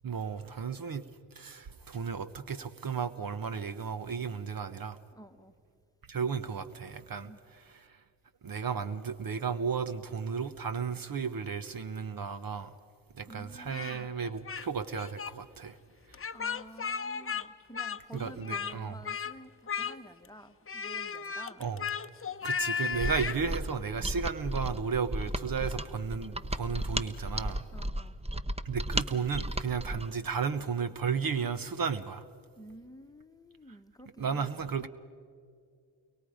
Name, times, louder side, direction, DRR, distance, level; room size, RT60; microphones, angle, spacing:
voice 1, 0.0-1.0 1.4-5.0 6.1-7.3 8.4-12.7 13.2-15.8 18.1-19.0 21.6-21.8 22.4-27.6 28.6-32.2 34.2-34.9, right 6 dB, 50° right, 1.1 m, -34 dB
voice 2, 5.1-5.5 7.2-7.4 13.3-14.1 16.3-21.7 22.2-22.4 27.7-28.2 32.6-34.9, equal, 10° left, 1.2 m, -51 dB
Speech, 13.7-14.7 14.9-15.3 16.1-17.5 17.7-18.8 19.0-19.3 19.7-20.3 20.7-23.4, left 6 dB, 30° left, 0.8 m, -35 dB
Mechanisms, 22.9-30.1, right 1 dB, 15° right, 1.0 m, -34 dB
29.5 x 23.0 x 5.1 m
supercardioid pair, 40°, 45 cm